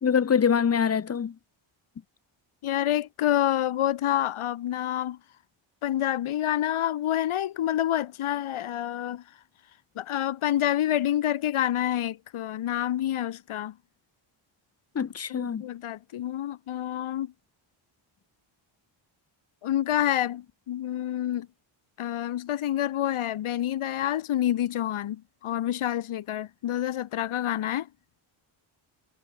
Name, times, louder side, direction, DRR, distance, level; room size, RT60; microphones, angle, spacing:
voice 1, 0.0-1.3 14.9-15.7, left 7 dB, 30° left, 1.2 m, -24 dB
voice 2, 2.6-5.2 5.8-9.2 10.0-13.7 15.3-17.3 19.6-21.5 22.0-27.9, left 12 dB, 90° left, 3.6 m, -28 dB
wide cardioid pair, 175°, 48 cm